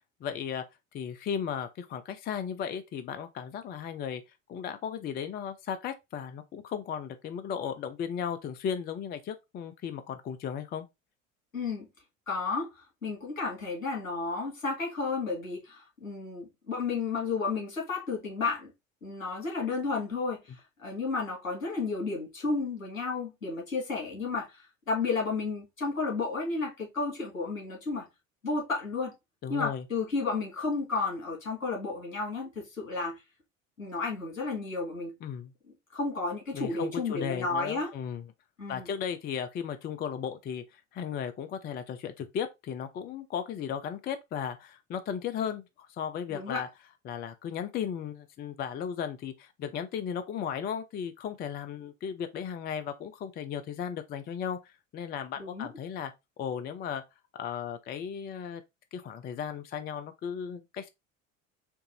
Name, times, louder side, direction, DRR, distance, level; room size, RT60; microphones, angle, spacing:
voice 1, 0.2-0.6 0.9-4.2 4.5-10.9 29.4-29.8 35.2-35.5 36.5-38.2 38.7-46.7 47.0-56.1 56.4-57.0 57.4-58.6 58.9-60.9, left 8 dB, 25° left, 0.5 m, -35 dB
voice 2, 11.5-11.9 12.3-12.7 13.0-18.7 19.0-28.0 28.4-29.1 29.5-33.1 33.8-35.1 35.9-37.9 38.6-38.9 46.3-46.6 55.4-55.7, left 4 dB, 80° left, 2.2 m, -32 dB
4.5 x 2.5 x 3.9 m
figure-of-eight pair, 65°, 39 cm